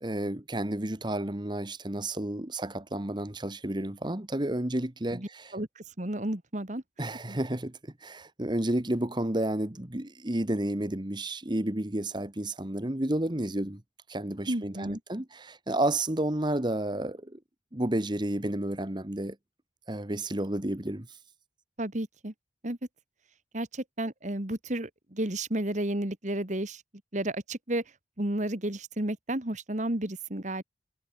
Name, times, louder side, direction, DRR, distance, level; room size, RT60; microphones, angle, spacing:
voice 1, 0.0-5.5 7.0-13.8 14.1-17.4 17.7-19.4 19.9-21.1, right 1 dB, 25° right, 1.4 m, -31 dB
voice 2, 5.1-6.8 7.3-7.4 14.5-15.0 21.8-22.3 22.6-22.8 23.5-26.8 27.1-27.8 28.2-30.6, right 1 dB, 40° right, 2.1 m, -32 dB
head